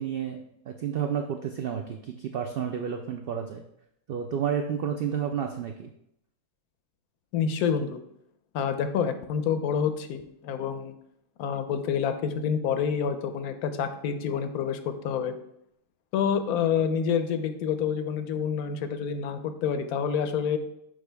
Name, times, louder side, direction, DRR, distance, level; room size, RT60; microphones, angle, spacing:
voice 1, 0.0-3.6 4.1-5.9, right 8 dB, 90° right, 5 dB, 0.5 m, -31 dB
voice 2, 7.3-8.0 8.5-10.9 11.4-15.3 16.1-20.6, left 7 dB, 85° left, 9 dB, 1.1 m, -28 dB
6.5 x 4.8 x 3.4 m, 0.76 s
omnidirectional pair, 1.6 m